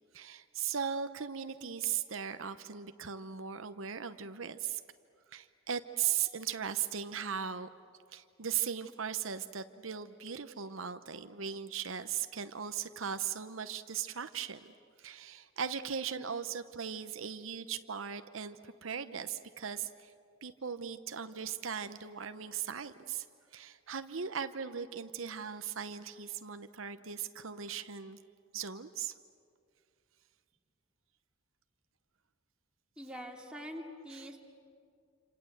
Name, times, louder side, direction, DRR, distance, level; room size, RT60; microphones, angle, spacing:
voice 1, 0.1-4.8 5.3-7.7 8.1-14.7 15.0-20.1 20.4-23.3 23.5-28.2 28.5-29.2 34.1-34.3, right 8 dB, 70° right, 10 dB, 0.9 m, -38 dB
voice 2, 33.0-34.4, equal, 5° right, 0 dB, 2.7 m, -44 dB
28.0 x 26.5 x 8.0 m, 2.2 s
head